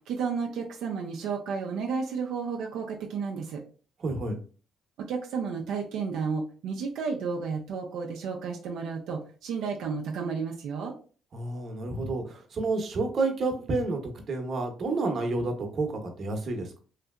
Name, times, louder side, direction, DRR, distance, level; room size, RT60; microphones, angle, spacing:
voice 1, 0.1-3.6 5.1-10.9, right 5 dB, 85° right, 1 dB, 0.5 m, -32 dB
voice 2, 4.0-4.4 11.3-16.8, right 3 dB, 55° right, 3 dB, 0.9 m, -30 dB
3.2 x 2.8 x 2.3 m, 0.38 s
cardioid pair, 90°, 0 cm